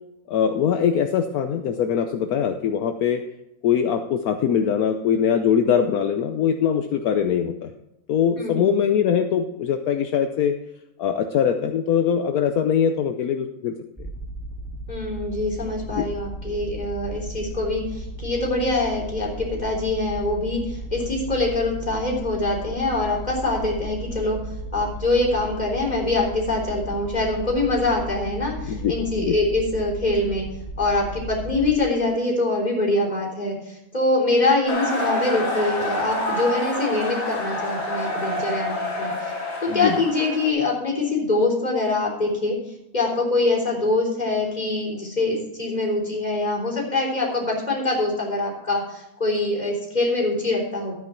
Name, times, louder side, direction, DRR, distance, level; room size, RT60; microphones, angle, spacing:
voice 1, 0.3-3.2 3.6-7.7 8.1-10.5 11.0-13.7 16.0-16.1 28.6-29.4 39.7-40.0, left 8 dB, 75° left, 6 dB, 1.2 m, -22 dB
voice 2, 8.4-8.7 14.9-24.4 24.7-30.5 30.8-39.3 39.6-42.6 42.9-50.9, left 2 dB, 25° left, -2 dB, 3.7 m, -24 dB
sound 1, 14.0-31.8, right 1 dB, ahead, 2.4 m, -35 dB
sound 2, 34.7-40.5, left 1 dB, 55° left, 3.1 m, -27 dB
13.0 x 9.3 x 4.4 m, 0.86 s
omnidirectional pair, 1.6 m